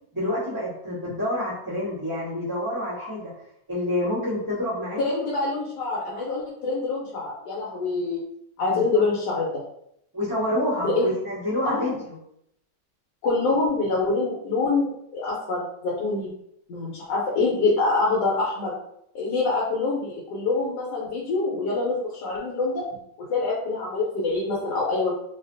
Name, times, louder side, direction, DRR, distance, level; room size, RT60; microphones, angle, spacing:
voice 1, 0.1-3.3 3.7-5.2 8.7-9.0 10.1-12.0, left 1 dB, 15° right, -14 dB, 1.0 m, -28 dB
voice 2, 5.0-8.2 8.6-9.6 10.8-11.1 11.6-12.0 13.2-16.3 16.7-18.7 19.1-22.8 23.3-25.1, left 3 dB, 70° left, -5 dB, 1.2 m, -25 dB
3.2 x 2.5 x 2.5 m, 0.74 s
omnidirectional pair, 2.1 m